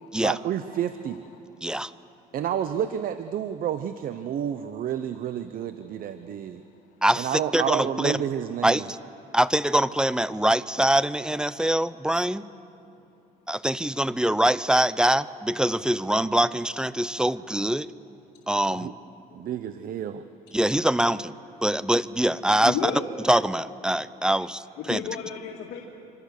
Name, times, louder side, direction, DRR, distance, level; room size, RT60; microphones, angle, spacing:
voice 1, 0.2-1.2 2.3-6.6 7.2-8.9 18.7-18.9 19.3-20.2, right 9 dB, 60° right, 11 dB, 0.8 m, -30 dB
voice 2, 1.6-1.9 7.0-8.2 8.6-8.8 9.3-12.4 13.5-17.9 18.5-18.9 20.5-21.3 21.6-22.9 23.3-24.6 24.9-25.0, right 1 dB, 5° right, 16 dB, 0.6 m, -23 dB
voice 3, 22.6-23.0 24.4-24.5 24.8-25.9, left 8 dB, 85° left, 0 dB, 2.3 m, -32 dB
26.0 x 26.0 x 6.7 m, 2.7 s
cardioid pair, 110°, 17 cm